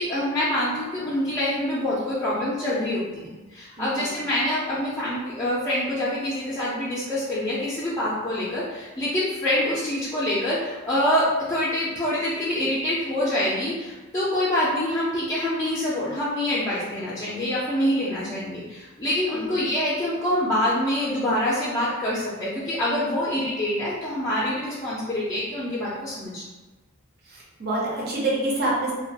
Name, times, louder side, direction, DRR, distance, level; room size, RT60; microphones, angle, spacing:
voice 1, 0.0-26.4, left 1 dB, 15° left, -10 dB, 0.4 m, -26 dB
voice 2, 3.8-4.1 19.3-19.6 27.2-28.9, right 2 dB, 50° right, -5 dB, 0.6 m, -27 dB
2.3 x 2.2 x 2.7 m, 1.2 s
head